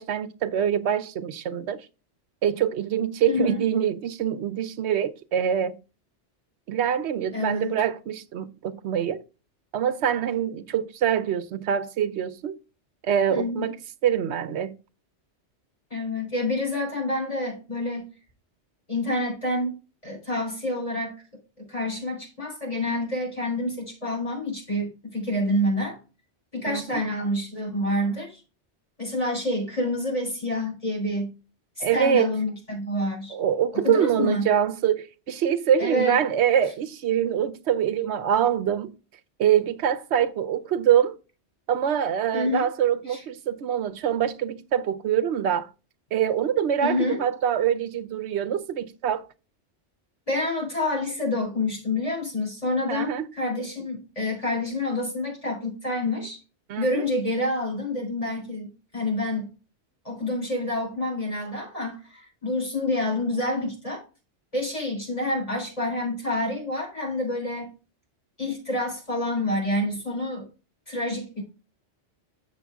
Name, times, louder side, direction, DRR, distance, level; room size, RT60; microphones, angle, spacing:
voice 1, 0.0-1.9 2.4-5.8 6.7-9.2 9.7-12.6 13.0-13.7 14.0-14.7 26.7-27.1 31.8-32.3 33.3-38.9 39.4-41.2 41.7-45.7 46.1-49.3 52.9-53.3 56.7-57.0, right 9 dB, 70° right, 0.9 m, -24 dB
voice 2, 3.2-3.6 7.3-7.7 13.3-13.7 15.9-18.1 18.9-19.8 20.0-21.1 21.6-26.0 26.5-28.4 29.0-31.3 31.8-33.4 33.7-34.5 35.8-36.2 42.3-42.7 43.1-43.2 46.8-47.2 50.3-56.4 56.8-59.5 60.0-64.0 64.5-67.7 68.4-70.5 70.9-71.4, left 1 dB, 30° left, 3.8 m, -28 dB
7.2 x 6.7 x 3.5 m
omnidirectional pair, 1.2 m